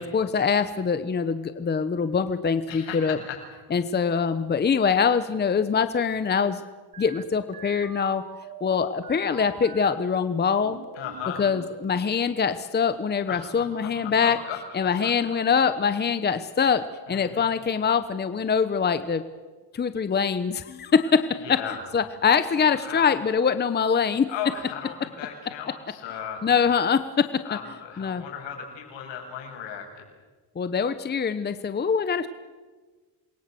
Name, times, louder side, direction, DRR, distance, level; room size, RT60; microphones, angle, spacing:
voice 1, 0.0-3.2 3.7-6.6 7.0-8.2 8.6-10.8 11.4-14.4 14.7-19.2 19.7-21.6 21.9-24.3 26.4-27.6 28.0-28.2 30.6-32.3, left 6 dB, 25° left, 11 dB, 1.0 m, -24 dB
voice 2, 2.7-3.4 10.9-11.4 13.3-15.1 17.1-17.5 21.4-21.8 22.8-23.1 24.3-26.4 27.4-30.0, left 8 dB, 75° left, 2 dB, 7.4 m, -36 dB
sound 1, 6.9-9.9 10.4-12.0, right 6 dB, 50° right, 2.1 m, -44 dB
28.0 x 22.0 x 7.8 m, 1.4 s
cardioid pair, 140°, 44 cm